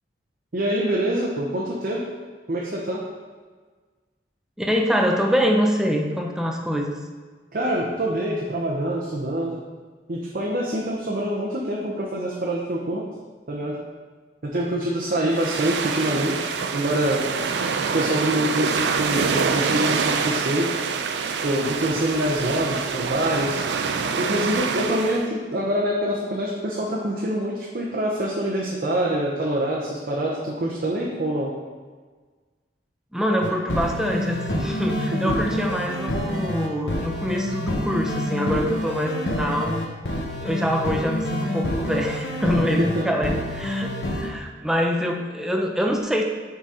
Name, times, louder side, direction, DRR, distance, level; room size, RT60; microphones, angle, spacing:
voice 1, 0.5-2.0 2.5-3.0 7.5-9.7 10.1-13.0 13.5-13.8 14.4-17.2 17.9-20.7 21.4-23.6 24.2-31.5 35.2-35.3 42.5-43.2, right 1 dB, 55° right, -3 dB, 0.7 m, -25 dB
voice 2, 4.6-7.0 33.1-39.7 40.4-46.2, equal, 5° right, 1 dB, 0.5 m, -25 dB
sound 1, 15.3-25.3, right 5 dB, 75° right, 0.4 m, -26 dB
sound 2, 33.4-44.3, left 1 dB, 70° left, 0.8 m, -27 dB
6.2 x 3.9 x 4.2 m, 1.4 s
head